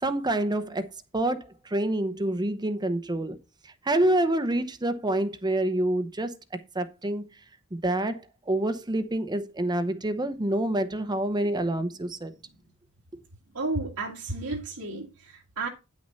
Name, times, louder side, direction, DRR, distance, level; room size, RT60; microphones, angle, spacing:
voice 1, 0.0-0.9 1.1-1.4 1.6-3.4 3.8-6.3 6.7-7.2 7.7-12.3, right 1 dB, 20° right, 0.8 m, -27 dB
voice 2, 13.5-15.7, right 3 dB, 80° right, 1.7 m, -32 dB
9.6 x 6.3 x 4.1 m
head